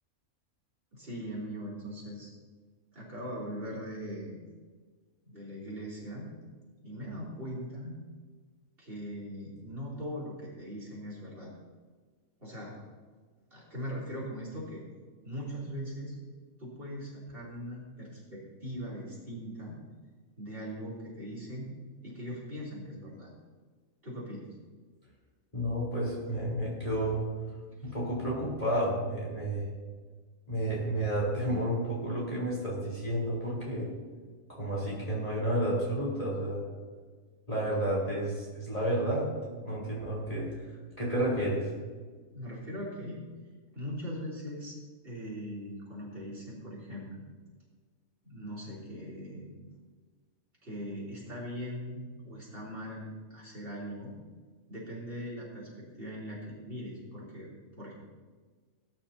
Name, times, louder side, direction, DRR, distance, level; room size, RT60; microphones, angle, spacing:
voice 1, 0.9-2.3 2.9-4.4 5.2-6.3 6.8-8.0 8.8-11.5 12.4-12.7 13.5-14.8 15.2-16.2 16.6-19.8 20.4-21.7 22.0-23.3 24.0-24.5 27.8-27.9 42.3-43.2 43.7-44.8 45.0-47.3 48.2-49.6 50.6-54.1 54.7-57.5 57.8-57.9, equal, 40° right, -6 dB, 3.8 m, -40 dB
voice 2, 25.5-27.2 27.8-29.7 30.5-33.9 34.5-36.6 37.5-39.3 39.6-40.5 41.0-41.7, right 1 dB, 25° left, -6 dB, 3.9 m, -31 dB
19.0 x 10.5 x 2.9 m, 1.4 s
omnidirectional pair, 1.5 m